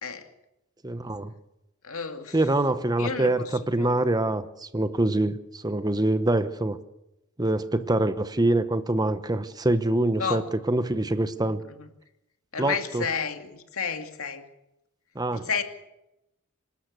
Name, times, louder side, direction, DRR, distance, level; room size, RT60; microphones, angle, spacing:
voice 1, 0.8-1.3 2.3-6.8 7.4-11.6 12.6-13.0 15.1-15.5, right 1 dB, 20° right, 12 dB, 0.9 m, -25 dB
voice 2, 1.8-2.4 3.0-3.5 3.8-3.9 10.2-10.4 11.5-11.6 11.8-11.9 12.5-14.4 15.3-15.6, left 6 dB, 75° left, 6 dB, 2.4 m, -31 dB
26.5 x 13.0 x 8.2 m, 0.91 s
head